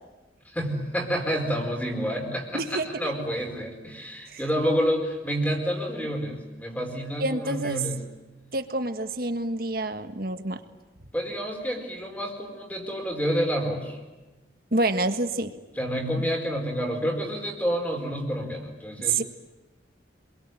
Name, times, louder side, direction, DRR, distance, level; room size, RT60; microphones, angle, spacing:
voice 1, 0.4-8.0 11.1-14.0 15.8-19.2, equal, 10° left, 3 dB, 4.7 m, -29 dB
voice 2, 2.5-3.1 4.3-4.4 7.2-7.8 8.5-10.6 14.7-15.5 19.0-19.2, right 2 dB, 50° right, 8 dB, 1.7 m, -27 dB
27.5 x 22.5 x 9.2 m, 1.1 s
head